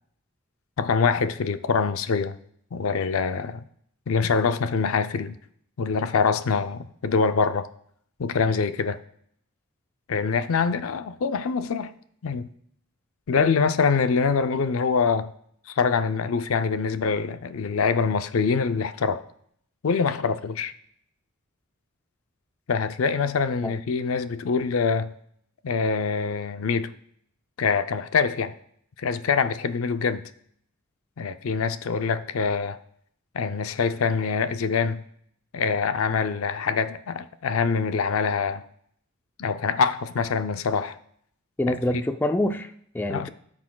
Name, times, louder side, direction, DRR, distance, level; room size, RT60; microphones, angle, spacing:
voice 1, 0.8-2.4 2.7-3.6 4.1-5.4 5.8-7.7 8.2-9.0 10.1-11.9 12.2-12.5 13.3-15.3 15.7-19.2 19.8-20.7 22.7-25.1 25.6-26.9 27.6-28.5 29.0-30.2 31.2-32.8 33.3-35.0 35.5-38.6 39.4-41.0 41.7-41.8 43.1-43.3, left 5 dB, 70° left, 0.4 m, -24 dB
voice 2, 41.6-43.3, left 1 dB, 10° left, 0.3 m, -26 dB
14.5 x 6.0 x 2.2 m
head